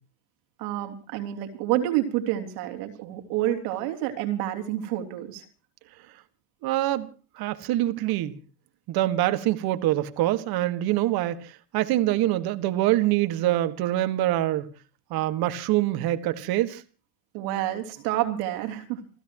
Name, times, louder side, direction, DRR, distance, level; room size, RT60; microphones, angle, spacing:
voice 1, 0.6-5.5 17.3-19.0, right 13 dB, 70° right, 3.1 m, -28 dB
voice 2, 6.6-7.1 7.4-8.4 8.9-14.6 15.1-16.8, right 15 dB, 50° right, 1.7 m, -25 dB
29.0 x 13.5 x 3.0 m
supercardioid pair, 120°, 47 cm